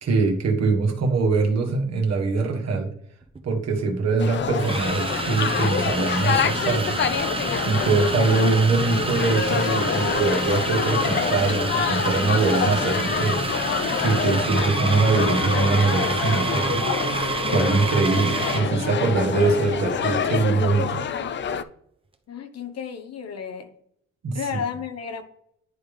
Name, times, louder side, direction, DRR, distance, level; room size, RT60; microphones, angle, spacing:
voice 1, 0.0-2.9 3.4-7.0 7.6-13.4 14.0-16.9 17.4-21.0 24.2-24.4, right 4 dB, 60° right, 3 dB, 1.5 m, -23 dB
sound 1, 3.2-3.4 4.5-18.7, right 3 dB, 20° right, 0.8 m, -29 dB
sound 2, 4.2-21.6, left 7 dB, 40° left, 0.5 m, -26 dB
sound 3, 7.6-20.5, right 7 dB, 80° right, 0.8 m, -38 dB
voice 2, 22.3-23.7 24.3-25.2, left 7 dB, 55° left, 8 dB, 1.1 m, -32 dB
10.5 x 3.5 x 3.3 m, 0.73 s
cardioid pair, 90°, 30 cm